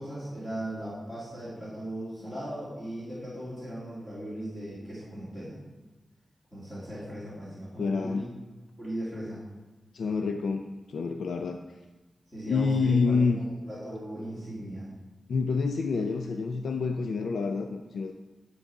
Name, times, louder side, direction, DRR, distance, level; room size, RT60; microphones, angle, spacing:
voice 1, 0.0-5.6 6.5-8.3 8.8-9.4 12.3-14.9, right 1 dB, 15° left, -11 dB, 3.0 m, -38 dB
voice 2, 7.8-8.3 9.9-11.6 12.5-13.4 15.3-18.1, left 4 dB, 90° left, 5 dB, 0.4 m, -27 dB
11.5 x 4.0 x 6.0 m, 1.2 s
wide cardioid pair, 160°, 0 cm